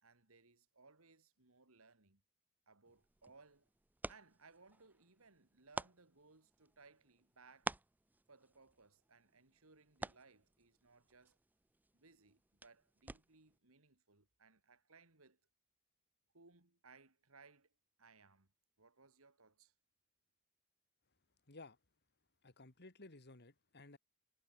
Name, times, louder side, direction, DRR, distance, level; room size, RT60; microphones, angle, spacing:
voice 1, 0.0-2.2 2.7-3.7 4.1-7.7 8.3-11.4 11.9-15.4 16.3-17.7 18.0-18.5 18.8-19.7, right 4 dB, 70° right, 2.7 m, -65 dB
sound 1, 2.9-13.6, right 2 dB, 10° right, 0.4 m, -51 dB
voice 2, 22.4-24.0, left 2 dB, 50° left, 2.6 m, -56 dB
head